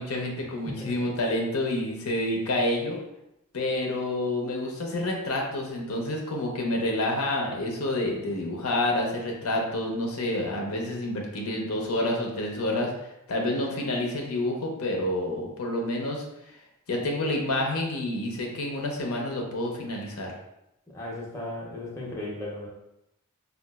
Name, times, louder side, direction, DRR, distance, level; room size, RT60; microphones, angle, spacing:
voice 1, 0.0-3.0 3.5-12.9 13.3-16.2 16.9-20.4, left 1 dB, 80° left, 0 dB, 0.6 m, -28 dB
voice 2, 0.7-1.0 20.9-22.7, left 1 dB, 15° left, -5 dB, 0.7 m, -36 dB
3.8 x 2.3 x 2.3 m, 0.86 s
head